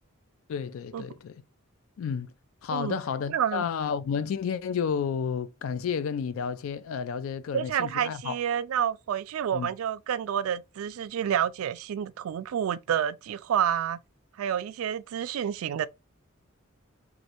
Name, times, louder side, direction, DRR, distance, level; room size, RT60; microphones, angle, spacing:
voice 1, 0.5-1.4 2.0-2.3 2.6-8.4 9.5-9.7, left 7 dB, 70° left, 0.3 m, -31 dB
voice 2, 3.3-3.6 7.5-14.0 14.4-15.9, right 9 dB, 85° right, 0.3 m, -29 dB
3.1 x 2.5 x 2.8 m
head